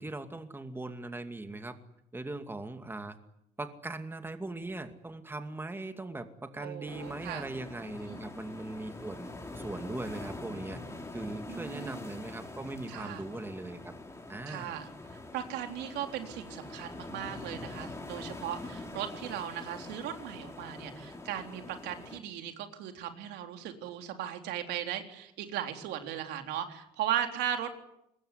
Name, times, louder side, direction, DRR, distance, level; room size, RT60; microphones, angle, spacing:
voice 1, 0.0-1.8 2.1-3.2 3.6-10.8 11.1-13.9 14.3-14.7, right 2 dB, 15° right, 7 dB, 2.5 m, -40 dB
voice 2, 6.6-7.4 7.8-8.2 11.5-12.0 12.9-13.2 14.5-14.9 15.3-27.7, right 10 dB, 85° right, 5 dB, 3.8 m, -37 dB
sound 1, 6.9-22.2, left 2 dB, 15° left, 5.1 m, -44 dB
24.5 x 21.0 x 9.9 m, 0.78 s
cardioid pair, 110°, 17 cm